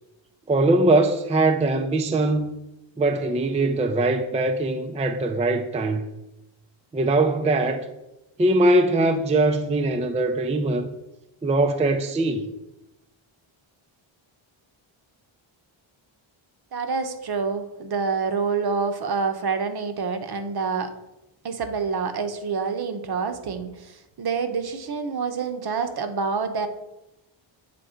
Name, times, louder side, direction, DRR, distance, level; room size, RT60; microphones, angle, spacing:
voice 1, 0.5-2.5 3.0-6.0 6.9-7.8 8.4-10.9 11.4-12.4, right 2 dB, 15° right, 0.4 m, -21 dB
voice 2, 16.7-20.9 21.4-26.7, right 5 dB, 50° right, 0.9 m, -27 dB
7.7 x 3.4 x 5.0 m
wide cardioid pair, 125°, 48 cm